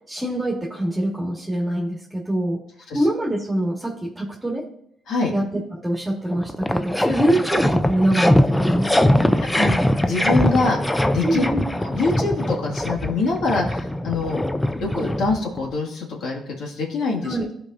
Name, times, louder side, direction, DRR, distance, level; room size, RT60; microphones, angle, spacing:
voice 1, 0.1-2.6 2.9-4.7 5.3-9.3 11.2-11.6 17.2-17.5, right 1 dB, 10° right, -2 dB, 1.5 m, -24 dB
sound 1, 5.9-6.0 6.3-15.7, left 1 dB, 10° left, 0.5 m, -21 dB
voice 2, 9.4-10.8 11.1-11.4 11.8-14.4 14.8-17.4, left 3 dB, 75° left, -1 dB, 1.9 m, -25 dB
14.0 x 4.9 x 2.6 m, 0.73 s
cardioid pair, 90°, 0 cm